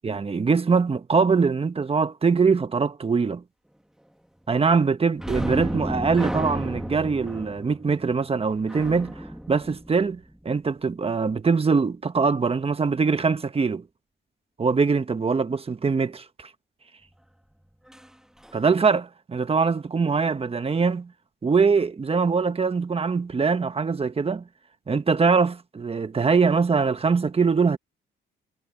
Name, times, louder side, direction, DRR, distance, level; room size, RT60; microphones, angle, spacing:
voice 1, 0.0-3.4 4.5-9.2 9.5-13.8 14.6-16.2 18.5-21.1 21.4-24.4 24.9-27.8, right 5 dB, 30° right, 1.4 m, -22 dB
sound 1, 5.2-10.6 17.9-18.1 18.4-18.6, equal, 5° right, 1.8 m, -32 dB
cardioid pair, 90°, 20 cm